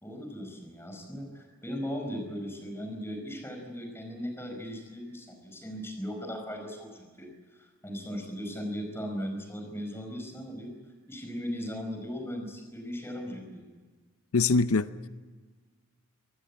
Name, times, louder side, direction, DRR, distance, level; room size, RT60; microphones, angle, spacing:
voice 1, 0.0-10.7 11.1-13.7, equal, 10° left, 5.0 m, -38 dB
voice 2, 14.3-15.1, left 4 dB, 90° left, 0.7 m, -24 dB
24.0 x 19.0 x 8.5 m
head